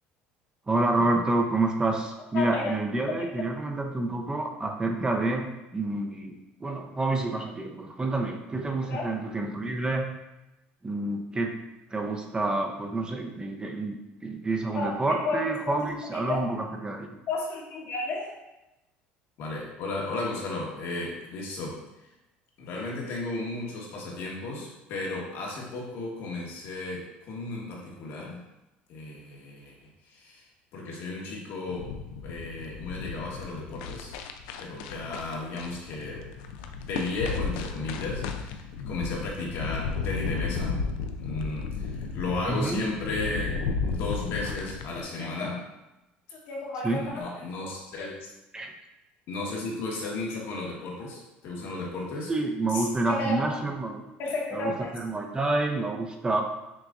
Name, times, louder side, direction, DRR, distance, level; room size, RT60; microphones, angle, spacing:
voice 1, 0.7-10.1 10.8-11.6 11.9-17.1 42.5-42.8 46.8-47.0 48.5-48.7 52.3-54.0 54.5-56.4, right 2 dB, 20° right, 2 dB, 0.5 m, -28 dB
voice 2, 2.3-2.7 3.2-3.3 8.9-9.1 14.7-16.5 17.3-18.3 19.4-21.7 22.6-28.4 28.9-30.4 30.7-31.9 32.2-34.1 34.6-36.3 36.8-40.8 41.2-43.5 43.8-45.6 46.3-48.3 49.3-52.3 52.7-53.4 54.2-54.9, left 2 dB, 65° left, -2 dB, 1.2 m, -34 dB
sound 1, 31.7-45.0, left 5 dB, 85° left, 0.3 m, -34 dB
6.0 x 2.4 x 2.4 m, 0.95 s
supercardioid pair, 95°, 5 cm